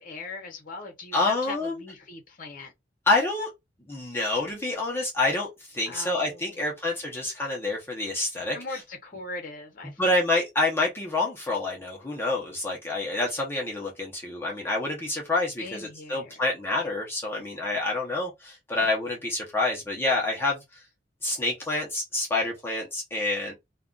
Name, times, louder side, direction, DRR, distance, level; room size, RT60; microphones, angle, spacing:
voice 1, 0.0-2.7 5.8-6.7 8.5-10.0 15.6-16.4, left 3 dB, 45° left, 0.8 m, -40 dB
voice 2, 1.1-1.8 3.1-3.5 3.9-8.8 10.0-20.6 21.2-23.5, left 2 dB, 15° left, 0.7 m, -27 dB
2.4 x 2.3 x 3.7 m
head